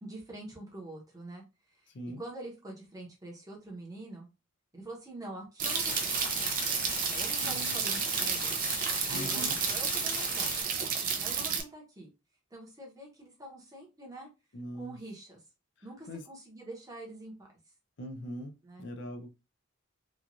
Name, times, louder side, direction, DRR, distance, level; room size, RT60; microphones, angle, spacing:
voice 1, 0.0-1.9 2.2-4.3 4.7-6.3 7.0-8.7 9.1-10.6 11.2-12.1 12.5-14.3 14.7-15.4 15.8-17.5 18.6-18.8, right 1 dB, 15° right, -1 dB, 0.8 m, -45 dB
sound 1, 5.6-10.6, left 1 dB, 20° left, 1.0 m, -37 dB
sound 2, 5.6-11.6, right 7 dB, 40° right, 0.4 m, -32 dB
voice 2, 7.4-7.8 9.1-9.6 14.5-15.0 16.1-16.2 18.0-19.3, equal, 55° left, 4 dB, 0.5 m, -41 dB
3.0 x 2.4 x 2.5 m, 0.27 s
head